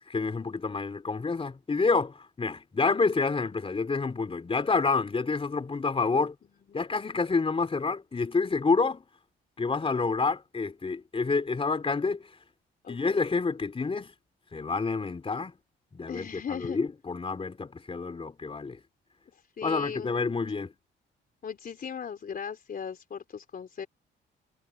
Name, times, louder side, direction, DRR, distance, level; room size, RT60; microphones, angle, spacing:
voice 1, 0.1-6.4 6.7-9.0 9.6-12.3 12.9-14.1 14.5-15.5 15.9-18.8 19.6-20.7, left 4 dB, 30° left, 3.8 m, -28 dB
voice 2, 12.8-13.3 16.1-16.8 19.3-20.2 21.4-23.9, left 7 dB, 50° left, 3.8 m, -38 dB
cardioid pair, 90°, 20 cm